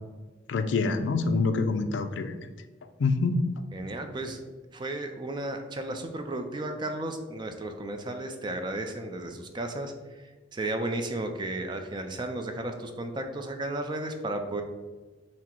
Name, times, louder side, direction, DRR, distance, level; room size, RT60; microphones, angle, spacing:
voice 1, 0.5-2.3 3.0-3.4, left 3 dB, 70° left, 8 dB, 0.4 m, -26 dB
voice 2, 3.7-4.4 4.7-14.6, right 1 dB, 25° right, 5 dB, 0.4 m, -34 dB
5.8 x 2.0 x 4.4 m, 1.3 s
head